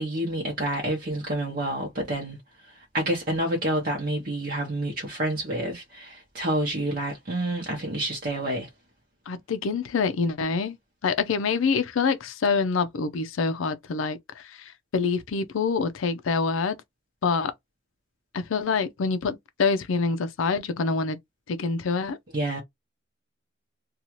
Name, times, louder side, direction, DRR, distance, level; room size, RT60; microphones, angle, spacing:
voice 1, 0.0-2.4 2.7-8.7 22.3-22.6, right 1 dB, 45° right, 0.8 m, -28 dB
voice 2, 9.3-10.8 11.0-16.8 17.2-17.5 18.3-21.2 21.5-22.2, left 4 dB, 85° left, 0.4 m, -26 dB
2.6 x 2.3 x 2.9 m
head